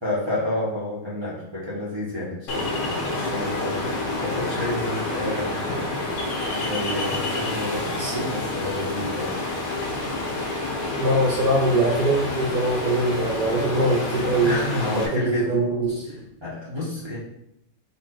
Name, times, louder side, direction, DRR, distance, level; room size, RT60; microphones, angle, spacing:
voice 1, 0.0-3.8 4.2-5.9 6.5-9.3 14.4-15.6 16.4-17.2, left 1 dB, 30° right, -9 dB, 0.5 m, -29 dB
Ocean, 2.5-15.1, left 2 dB, 75° left, 1.6 m, -28 dB
voice 2, 11.0-16.1, right 1 dB, 65° right, -3 dB, 0.9 m, -23 dB
4.3 x 2.7 x 4.4 m, 0.79 s
omnidirectional pair, 2.4 m